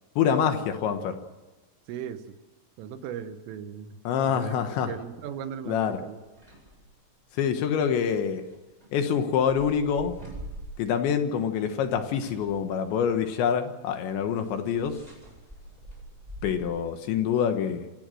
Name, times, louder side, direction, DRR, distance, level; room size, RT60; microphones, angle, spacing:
voice 1, 0.2-1.2 4.0-4.9 5.7-6.0 7.4-8.4 8.9-10.2 10.8-15.0 16.4-18.0, left 7 dB, 70° left, 7 dB, 3.2 m, -26 dB
voice 2, 1.9-2.4 2.8-4.0 4.3-4.6 4.9-6.2, right 8 dB, 75° right, 10 dB, 3.6 m, -37 dB
sound 1, 5.1-5.3 5.8-6.9 7.8-11.2 11.5-16.6, equal, 5° right, 7.5 m, -46 dB
27.0 x 16.5 x 7.7 m, 1.2 s
omnidirectional pair, 6.0 m